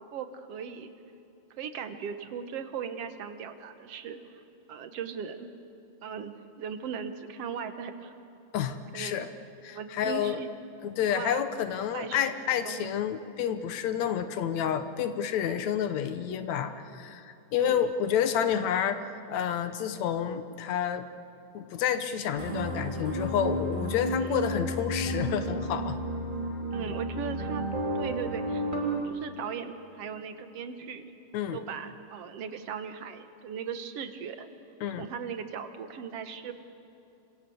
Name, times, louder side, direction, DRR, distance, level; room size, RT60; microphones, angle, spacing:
voice 1, 0.1-0.9 1.6-4.2 4.7-5.5 6.0-8.1 8.9-9.1 9.7-10.5 11.0-11.4 11.9-12.3 12.6-12.9 17.6-17.9 24.2-24.4 26.7-27.7 28.0-28.7 29.0-31.0 31.5-34.5 35.0-36.5, right 7 dB, 60° right, 9 dB, 1.9 m, -38 dB
voice 2, 8.5-9.3 9.6-10.4 10.8-21.1 21.5-26.0 31.3-31.6 34.8-35.1, left 9 dB, 70° left, 10 dB, 2.1 m, -29 dB
sound 1, 22.3-29.0, right 1 dB, 15° right, 2.5 m, -32 dB
27.5 x 25.5 x 7.9 m, 2.7 s
omnidirectional pair, 3.7 m